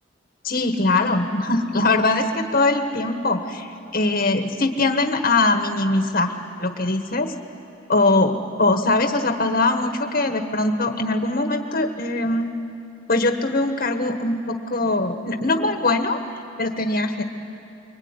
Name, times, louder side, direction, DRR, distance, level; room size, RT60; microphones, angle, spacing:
voice 1, 0.4-6.3 6.6-7.3 7.9-12.5 13.1-16.2 16.6-17.2, left 2 dB, 50° left, 5 dB, 1.4 m, -21 dB
25.0 x 23.5 x 9.8 m, 2.8 s
head